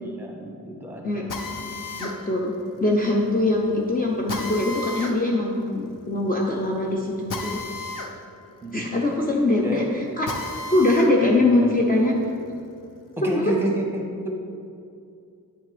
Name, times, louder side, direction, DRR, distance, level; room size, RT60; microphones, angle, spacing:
voice 1, 0.0-1.6 8.6-9.0 9.6-9.9 11.2-11.7 13.2-14.3, right 1 dB, 5° right, 0 dB, 1.1 m, -30 dB
Drill, 1.3-11.1 11.6-13.2, left 2 dB, 65° left, 0.8 m, -36 dB
voice 2, 2.0-2.5 2.8-7.6 8.7-10.3 10.7-12.1 13.2-13.5, left 2 dB, 25° left, -2 dB, 0.6 m, -22 dB
9.0 x 6.2 x 3.3 m, 2.5 s
wide cardioid pair, 125°, 35 cm